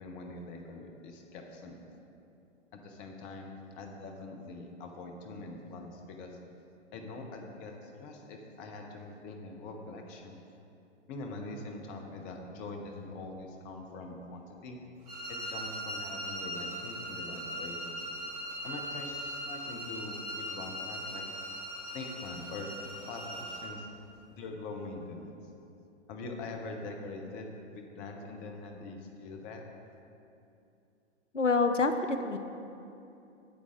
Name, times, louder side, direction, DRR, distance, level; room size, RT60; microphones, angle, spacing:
voice 1, 0.0-2.0 2.8-6.4 6.9-10.4 11.1-14.8 15.3-18.0 18.6-21.2 21.9-22.7 23.1-23.9 24.3-25.4 26.1-29.6, left 3 dB, 20° left, 2 dB, 0.7 m, -43 dB
sound 1, 15.0-23.8, equal, 35° right, 1.8 m, -40 dB
voice 2, 31.3-32.4, left 3 dB, 90° left, 8 dB, 0.6 m, -27 dB
8.6 x 8.6 x 3.7 m, 2.8 s
figure-of-eight pair, 115°, 36 cm